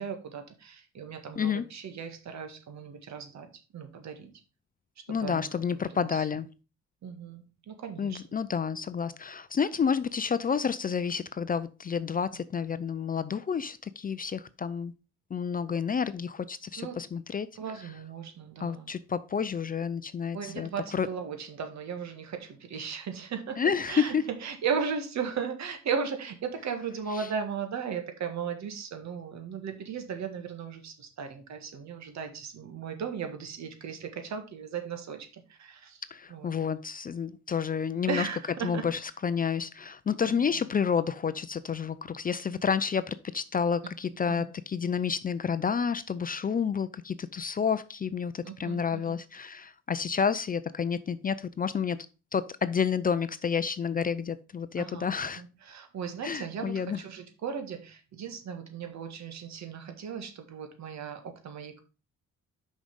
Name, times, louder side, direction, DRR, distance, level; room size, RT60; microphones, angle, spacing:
voice 1, 0.0-4.3 5.1-5.5 5.9-6.2 7.0-8.2 16.8-17.0 17.5-18.9 20.3-23.6 23.9-36.0 36.3-36.5 38.1-38.9 40.2-40.7 44.3-44.5 48.4-49.2 54.7-61.8, right 6 dB, 65° right, 1.7 m, -36 dB
voice 2, 5.1-6.5 8.0-14.9 15.3-17.5 18.6-21.1 23.6-24.3 36.1-38.3 38.6-52.0 52.3-55.4 56.2-57.0, left 6 dB, 30° left, 0.4 m, -30 dB
6.0 x 5.4 x 5.1 m
cardioid pair, 90°, 30 cm